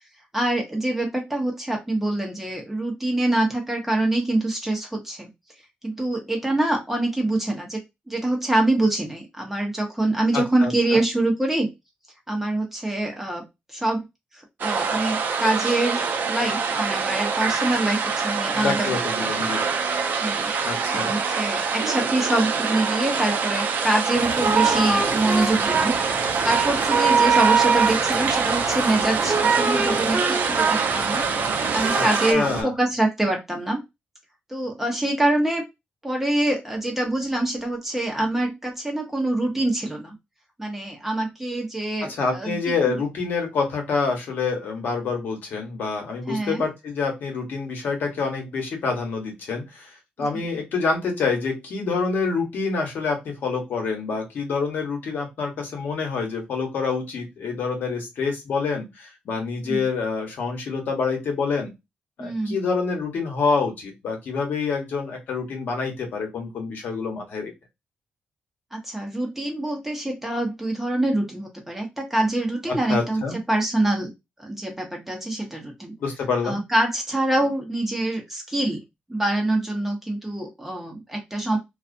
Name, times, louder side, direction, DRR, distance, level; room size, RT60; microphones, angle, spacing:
voice 1, 0.3-5.3 5.8-7.8 8.1-11.7 12.3-14.0 14.3-18.9 19.2-19.5 20.2-20.5 20.9-26.0 26.4-31.2 31.7-33.8 34.5-35.6 36.0-40.1 40.6-42.6 42.9-43.0 46.3-46.6 50.3-50.5 59.6-59.8 62.2-62.6 68.7-73.2 73.5-74.1 74.4-75.9 76.4-78.8 79.1-81.6, right 1 dB, 10° right, 1 dB, 0.9 m, -25 dB
voice 2, 10.3-11.0 18.5-19.7 20.6-21.1 32.0-32.7 42.0-61.7 62.2-67.5 72.7-73.4 76.0-76.6, left 4 dB, 75° left, 2 dB, 1.1 m, -27 dB
sound 1, 14.6-32.3, right 5 dB, 70° right, 0.4 m, -25 dB
sound 2, 24.1-32.6, right 5 dB, 50° right, 1.0 m, -24 dB
2.4 x 2.4 x 2.5 m, 0.21 s
cardioid pair, 100°, 3 cm